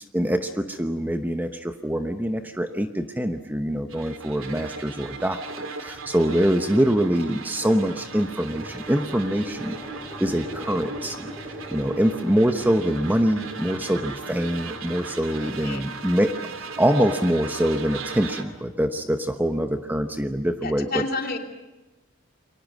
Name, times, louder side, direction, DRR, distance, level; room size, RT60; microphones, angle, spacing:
voice 1, 0.1-9.8 10.2-11.3 11.7-21.0, equal, 10° right, 7 dB, 1.0 m, -24 dB
sound 1, 3.9-18.4, right 4 dB, 85° right, 2.5 m, -37 dB
sound 2, 7.8-20.1, equal, 10° left, 2.7 m, -44 dB
voice 2, 15.3-15.8 20.6-21.4, left 3 dB, 50° left, 4 dB, 2.9 m, -31 dB
29.5 x 23.5 x 6.3 m, 1.1 s
head